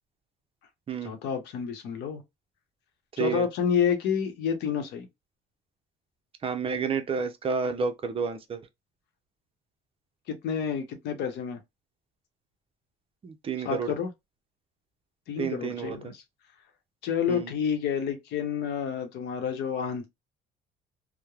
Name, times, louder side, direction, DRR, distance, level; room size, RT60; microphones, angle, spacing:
voice 1, 1.0-2.2 3.2-5.1 10.3-11.6 13.6-14.1 15.3-16.2 17.0-20.1, left 7 dB, 85° left, 0.8 m, -29 dB
voice 2, 3.2-3.5 6.4-8.6 13.2-13.9 15.4-16.0 17.3-17.5, right 5 dB, 35° right, 0.5 m, -30 dB
3.0 x 2.0 x 2.3 m
cardioid pair, 110°, 17 cm